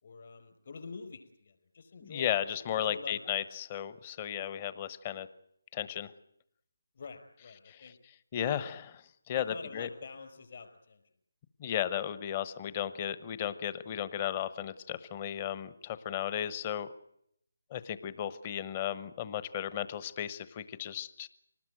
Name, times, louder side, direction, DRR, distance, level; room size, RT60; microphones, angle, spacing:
voice 1, 0.0-2.4 2.8-3.5 6.9-8.0 9.3-11.0, left 5 dB, 55° left, 7 dB, 5.1 m, -47 dB
voice 2, 2.0-5.3 5.7-6.1 8.3-9.9 11.6-16.9 17.7-21.3, left 10 dB, 30° left, 14 dB, 1.1 m, -35 dB
25.0 x 19.5 x 9.2 m, 0.76 s
figure-of-eight pair, 155°, 0 cm